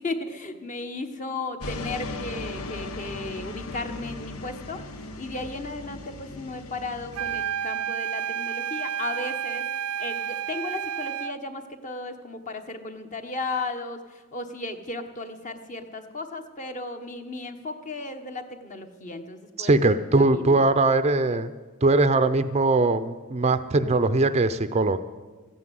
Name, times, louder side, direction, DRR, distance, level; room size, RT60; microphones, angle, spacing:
voice 1, 0.0-4.8 5.2-9.7 10.0-19.8 20.2-20.6, left 2 dB, 35° left, 7 dB, 1.2 m, -35 dB
sound 1, 1.6-7.5, left 2 dB, 85° left, 1.1 m, -37 dB
sound 2, 7.1-11.4, right 9 dB, 90° right, 0.5 m, -30 dB
voice 2, 19.6-21.5 21.8-25.0, right 2 dB, 30° right, 12 dB, 0.5 m, -21 dB
14.5 x 9.7 x 9.3 m, 1.3 s
head